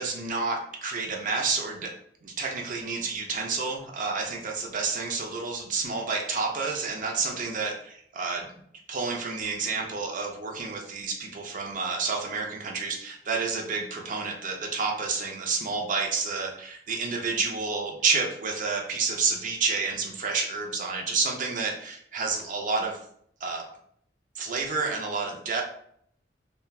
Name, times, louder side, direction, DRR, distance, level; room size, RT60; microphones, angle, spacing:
voice 1, 0.0-1.9 2.2-8.6 8.9-23.0 23.4-23.6 24.4-25.6, right 4 dB, 45° right, 1 dB, 0.5 m, -29 dB
2.9 x 2.2 x 2.3 m, 0.66 s
head